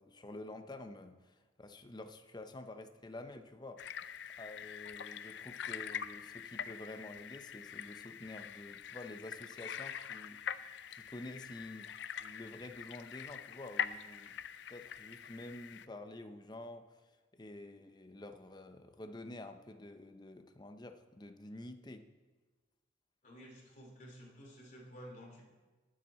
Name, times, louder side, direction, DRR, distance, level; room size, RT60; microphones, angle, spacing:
voice 1, 0.0-3.8 4.4-11.9 12.2-14.4 14.7-16.9 17.3-22.1, left 2 dB, 25° left, 7 dB, 0.7 m, -49 dB
sound 1, 3.8-15.9, left 8 dB, 70° left, 0.4 m, -44 dB
voice 2, 23.2-25.4, equal, 45° left, -2 dB, 3.0 m, -52 dB
19.5 x 7.6 x 4.2 m, 1.3 s
head